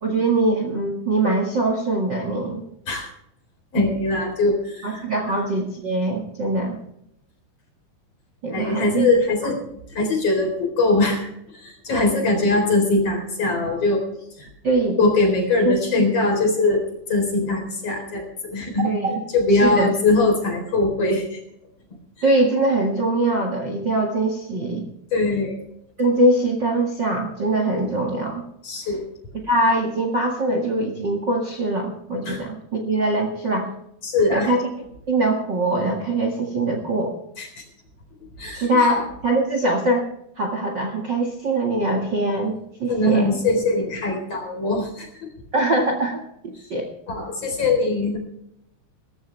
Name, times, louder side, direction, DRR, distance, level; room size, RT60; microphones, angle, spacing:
voice 1, 0.0-2.6 4.8-6.8 8.4-9.1 9.4-9.5 11.9-12.0 14.6-15.0 15.6-16.0 18.8-19.2 19.6-19.9 22.2-24.9 26.0-28.4 29.4-33.7 34.3-34.7 35.1-37.1 38.5-40.1 40.4-43.4 45.5-46.9, right 2 dB, 75° right, 2 dB, 1.0 m, -22 dB
voice 2, 3.7-5.4 8.5-9.6 9.9-14.0 14.4-14.5 15.0-16.8 17.1-18.9 19.3-21.4 25.1-25.6 28.6-29.1 32.3-32.4 34.0-34.5 37.4-37.5 38.4-39.0 42.9-45.1 47.1-48.2, left 2 dB, 35° left, 3 dB, 4.5 m, -21 dB
18.5 x 14.5 x 3.4 m, 0.75 s
omnidirectional pair, 5.6 m